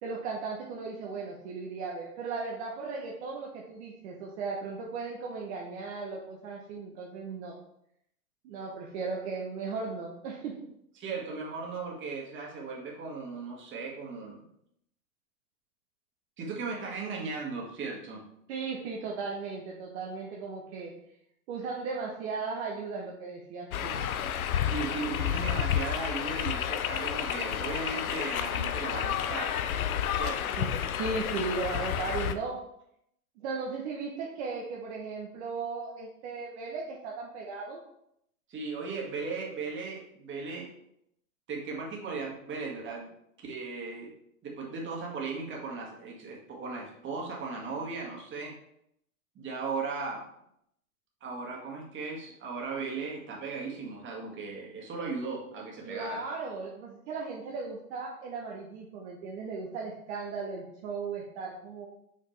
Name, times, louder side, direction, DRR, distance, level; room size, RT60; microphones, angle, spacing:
voice 1, 0.0-7.6 8.4-10.6 18.5-20.9 21.5-24.0 30.6-30.7 31.0-32.6 33.4-37.8 55.8-61.9, right 4 dB, 50° right, -2 dB, 1.2 m, -36 dB
voice 2, 11.0-14.4 16.4-18.2 24.6-29.6 30.2-30.6 38.5-40.7 41.5-43.1 43.4-44.1 44.4-48.5 49.4-50.3 51.2-56.3, right 4 dB, 25° right, -2 dB, 2.0 m, -37 dB
sound 1, 23.7-32.3, left 9 dB, 70° left, 0.7 m, -30 dB
6.3 x 5.5 x 3.3 m, 0.76 s
figure-of-eight pair, 95°, 44 cm